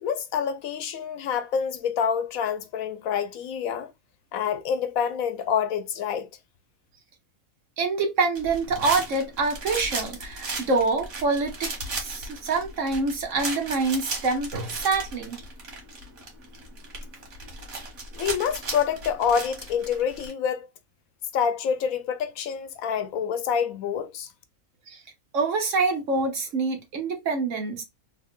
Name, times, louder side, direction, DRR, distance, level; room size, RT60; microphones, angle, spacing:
voice 1, 0.0-3.9 4.3-6.3 18.1-20.7 21.3-24.3, left 7 dB, 85° left, 1.1 m, -27 dB
voice 2, 7.8-11.7 12.0-15.4 24.9-25.0 25.3-27.8, right 3 dB, 65° right, 1.3 m, -26 dB
sound 1, 8.4-20.3, right 2 dB, 90° right, 1.7 m, -36 dB
3.6 x 2.2 x 3.6 m
omnidirectional pair, 1.4 m